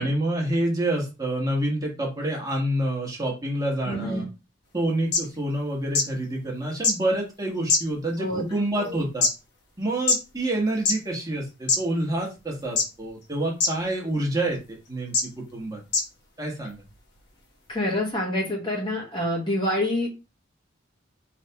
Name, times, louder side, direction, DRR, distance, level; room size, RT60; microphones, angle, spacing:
voice 1, 0.0-4.3 4.7-9.3 9.8-15.8 16.4-16.8, right 1 dB, 20° right, -1 dB, 1.2 m, -27 dB
voice 2, 3.9-4.3 8.2-9.0 17.7-20.1, left 1 dB, 25° left, -1 dB, 1.1 m, -27 dB
sound 1, 4.8-4.9 5.1-5.2 5.9-6.0 6.8-6.9 7.7-8.2 8.8-9.3 10.1-10.2 10.8-11.0 11.7-11.8 12.8-13.1 13.6-13.7 14.5-14.6 15.1-15.2 15.9-16.0 16.9-17.0, left 3 dB, 55° left, 1.2 m, -21 dB
4.9 x 3.4 x 2.8 m, 0.28 s
head